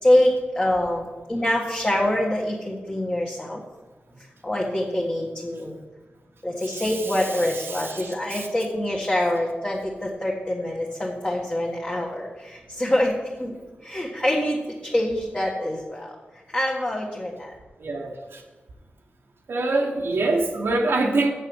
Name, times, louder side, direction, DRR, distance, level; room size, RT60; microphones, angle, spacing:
voice 1, 0.0-3.6 4.4-5.7 6.4-13.1 13.4-13.5 13.8-14.6 14.8-16.1 16.5-17.5, left 1 dB, 25° left, -3 dB, 1.6 m, -25 dB
voice 2, 6.6-8.5 17.8-18.4 19.5-21.3, right 2 dB, 85° right, 0 dB, 1.1 m, -26 dB
7.5 x 6.3 x 7.1 m, 1.2 s
cardioid pair, 65°, 4 cm